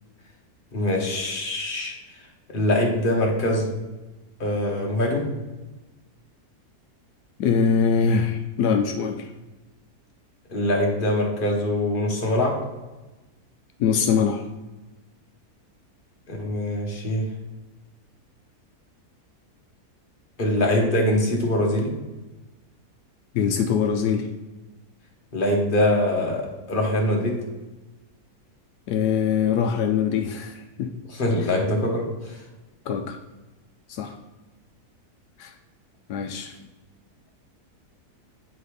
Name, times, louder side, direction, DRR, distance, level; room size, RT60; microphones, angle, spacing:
voice 1, 0.7-1.9 2.5-3.7 4.4-5.3 10.5-12.6 16.3-17.3 20.4-21.9 25.3-27.4 31.1-32.4, left 1 dB, 35° left, -1 dB, 1.6 m, -23 dB
voice 2, 7.4-9.3 13.8-14.4 23.3-24.3 28.9-30.9 32.9-33.2 33.9-34.1 35.4-35.5 36.1-36.5, left 6 dB, 80° left, 5 dB, 1.2 m, -23 dB
8.7 x 4.1 x 4.9 m, 1.1 s
omnidirectional pair, 1.7 m